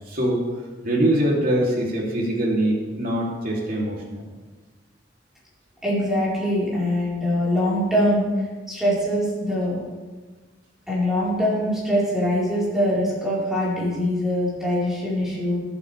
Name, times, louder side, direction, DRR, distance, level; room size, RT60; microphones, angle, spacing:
voice 1, 0.1-0.4 0.8-4.2, right 1 dB, 50° right, -4 dB, 3.1 m, -23 dB
voice 2, 5.8-8.3 8.7-9.8 10.9-15.6, equal, ahead, -8 dB, 4.5 m, -23 dB
21.5 x 8.2 x 3.5 m, 1.3 s
head